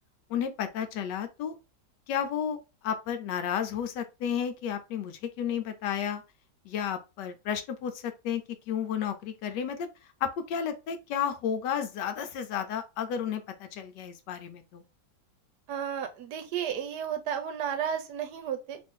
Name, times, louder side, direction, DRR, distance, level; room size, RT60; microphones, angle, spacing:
voice 1, 0.3-1.5 2.1-2.6 2.8-6.2 6.7-9.9 10.2-14.8, left 8 dB, 80° left, 1.2 m, -32 dB
voice 2, 15.7-18.8, right 8 dB, 75° right, 1.1 m, -33 dB
3.0 x 2.6 x 3.5 m
omnidirectional pair, 1.9 m